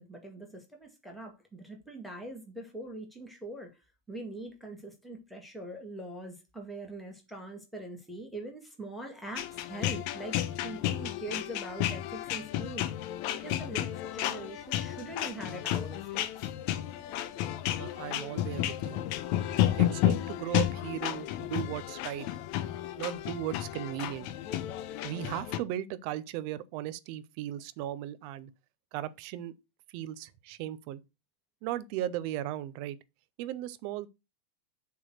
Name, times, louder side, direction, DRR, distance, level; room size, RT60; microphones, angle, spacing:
voice 1, 0.0-3.7 4.1-12.9 13.4-16.5, right 1 dB, ahead, 1.3 m, -43 dB
sound 1, 9.4-25.6, left 12 dB, 80° left, 1.9 m, -32 dB
voice 2, 17.8-19.0 19.5-22.3 23.0-24.3 25.0-28.5 28.9-29.5 29.9-31.0 31.6-33.0 33.4-34.1, right 12 dB, 80° right, 1.5 m, -37 dB
7.6 x 3.9 x 6.2 m
omnidirectional pair, 3.4 m